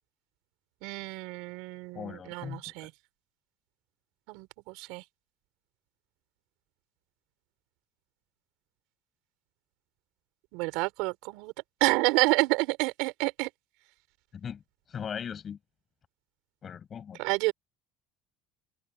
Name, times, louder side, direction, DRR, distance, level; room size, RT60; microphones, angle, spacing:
voice 1, 0.8-2.9 4.3-5.0 10.5-11.5 11.8-13.5 17.2-17.5, right 25 dB, 70° right, 5.5 m, -29 dB
voice 2, 1.9-2.9 14.3-14.6 14.9-15.6 16.6-17.2, left 7 dB, 25° left, 7.1 m, -39 dB
open air
cardioid pair, 165°, 0 cm